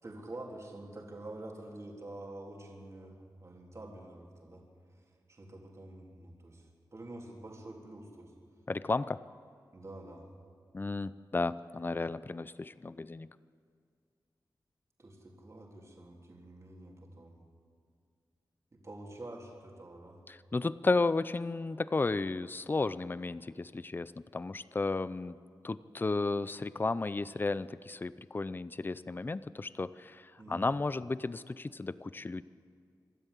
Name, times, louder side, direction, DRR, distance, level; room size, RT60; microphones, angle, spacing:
voice 1, 0.0-4.6 5.3-8.3 9.7-10.2 15.0-17.3 18.7-20.2 30.4-30.6, right 1 dB, 40° right, -1 dB, 3.4 m, -47 dB
voice 2, 8.7-9.2 10.7-13.3 20.3-25.4 25.6-32.4, left 3 dB, 25° left, 16 dB, 0.5 m, -33 dB
26.5 x 12.5 x 8.3 m, 2.2 s
wide cardioid pair, 105°, 8 cm